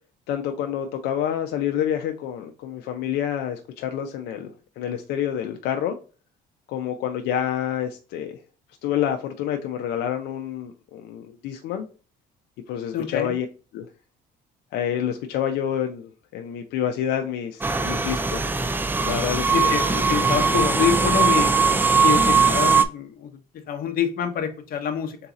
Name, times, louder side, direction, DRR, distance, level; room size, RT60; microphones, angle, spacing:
voice 1, 0.3-6.0 6.7-8.4 8.8-11.9 12.7-13.5 13.7-13.9 14.7-18.5 19.1-19.7, left 9 dB, 85° left, 5 dB, 0.5 m, -28 dB
voice 2, 12.9-13.4 19.5-21.5 22.0-23.3 23.7-25.2, left 8 dB, 60° left, 5 dB, 0.9 m, -26 dB
sound 1, 17.6-22.8, right 4 dB, 10° right, 0.4 m, -20 dB
4.0 x 2.8 x 3.6 m, 0.36 s
cardioid pair, 110°, 17 cm